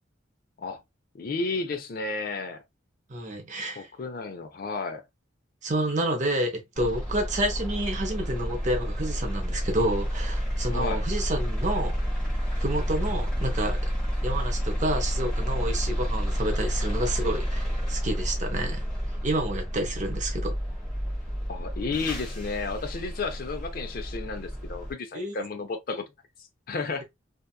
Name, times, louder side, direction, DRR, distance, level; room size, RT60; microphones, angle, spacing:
voice 1, 1.1-2.6 3.8-5.0 10.7-11.1 21.5-26.0 26.7-27.0, left 4 dB, 50° left, 0.4 m, -32 dB
voice 2, 3.1-3.9 5.6-11.9 12.6-13.8 14.2-18.8 19.2-20.5 25.1-25.3, right 1 dB, 40° right, 0.7 m, -29 dB
sound 1, 6.8-24.9, equal, 5° left, 1.2 m, -30 dB
2.7 x 2.3 x 2.3 m
head